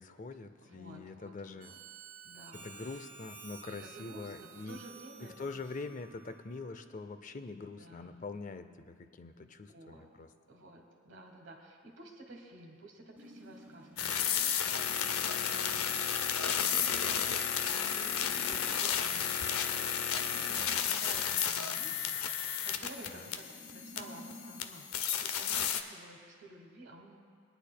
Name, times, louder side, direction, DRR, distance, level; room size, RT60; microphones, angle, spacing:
voice 1, 0.0-1.7 2.5-4.8 5.2-10.3 23.1-23.3, left 3 dB, 35° left, 9 dB, 0.5 m, -44 dB
voice 2, 0.6-1.8 2.2-3.0 3.8-5.3 5.9-6.0 7.8-8.2 9.7-10.1 10.5-21.9 22.6-27.1, right 2 dB, 60° right, 0 dB, 1.4 m, -53 dB
Harmonica, 1.6-6.8, right 6 dB, 80° right, 1.1 m, -53 dB
sound 1, 13.2-24.6, equal, 10° right, 0.6 m, -54 dB
sound 2, 14.0-25.8, left 8 dB, 85° left, 0.6 m, -32 dB
24.5 x 10.0 x 2.2 m, 2.1 s
head